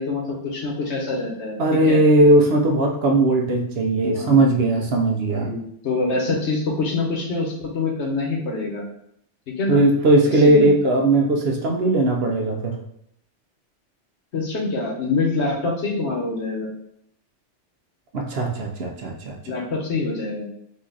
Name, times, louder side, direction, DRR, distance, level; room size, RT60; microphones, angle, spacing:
voice 1, 0.0-2.0 4.1-4.5 5.3-8.8 9.6-9.8 10.4-10.7 14.3-16.7 19.5-20.5, left 3 dB, 70° left, -1 dB, 1.2 m, -25 dB
voice 2, 1.6-5.5 9.7-12.8 18.1-19.5, right 2 dB, 60° right, 1 dB, 0.9 m, -18 dB
4.0 x 2.4 x 3.9 m, 0.73 s
omnidirectional pair, 1.2 m